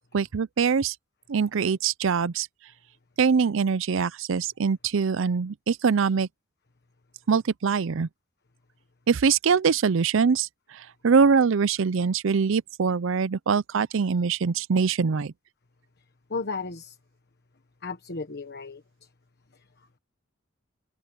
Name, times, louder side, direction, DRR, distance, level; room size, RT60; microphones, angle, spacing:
voice 1, 0.1-1.0 1.3-2.5 3.2-6.3 7.3-8.1 9.1-10.5 10.7-15.3, right 5 dB, 65° right, 0.5 m, -23 dB
voice 2, 16.3-17.0 17.8-18.8 19.5-19.6, left 4 dB, 50° left, 1.2 m, -34 dB
head